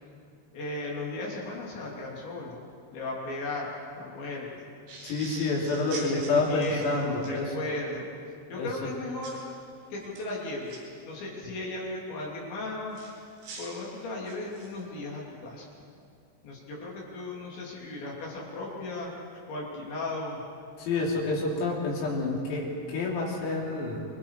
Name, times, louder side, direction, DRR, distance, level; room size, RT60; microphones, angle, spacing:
voice 1, 0.5-2.6 2.9-4.7 5.9-8.1 8.5-9.4 9.9-13.0 13.6-15.7 16.4-19.1 19.5-20.4, left 2 dB, 65° left, -3 dB, 5.2 m, -36 dB
sound 1, 4.9-7.4 9.2-9.5 10.0-10.8 12.9-14.8, right 3 dB, 80° right, 7.2 m, -44 dB
voice 2, 5.0-7.5 8.6-8.7 20.8-24.1, left 3 dB, 90° left, -3 dB, 6.5 m, -28 dB
28.5 x 21.5 x 4.8 m, 2.3 s
omnidirectional pair, 5.9 m